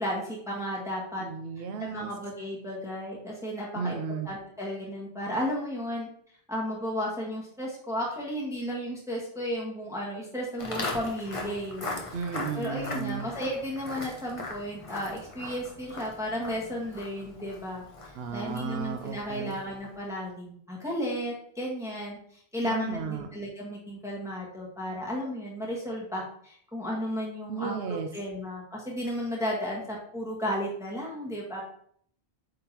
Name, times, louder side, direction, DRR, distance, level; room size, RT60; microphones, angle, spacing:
voice 1, 0.0-1.2 1.8-4.0 4.2-6.1 6.5-11.8 12.5-17.8 18.3-22.2 22.5-31.6, equal, 5° right, -4 dB, 1.4 m, -33 dB
voice 2, 1.2-2.1 3.7-4.3 12.1-13.3 18.1-19.6 22.6-23.3 27.5-28.1, right 6 dB, 75° right, 6 dB, 0.8 m, -34 dB
Walk footsteps, 10.6-19.8, left 2 dB, 30° left, 1.0 m, -39 dB
8.6 x 3.8 x 2.9 m, 0.62 s
omnidirectional pair, 1.1 m